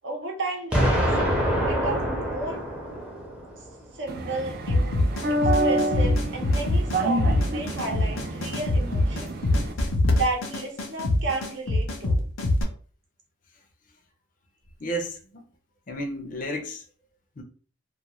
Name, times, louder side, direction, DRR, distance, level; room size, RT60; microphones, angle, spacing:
voice 1, 0.0-1.0 1.6-2.6 3.9-5.0 5.4-9.4 9.8-12.3, right 2 dB, 65° right, 0.7 m, -33 dB
Explosion, 0.7-3.7, equal, 5° right, 0.6 m, -25 dB
sound 1, 4.1-9.7, right 2 dB, 50° right, 0.3 m, -29 dB
sound 2, 4.7-12.6, left 1 dB, 85° left, 0.6 m, -24 dB
voice 2, 14.8-15.4 15.9-16.8 17.4-17.5, equal, 40° left, 0.5 m, -30 dB
2.4 x 2.2 x 2.9 m
head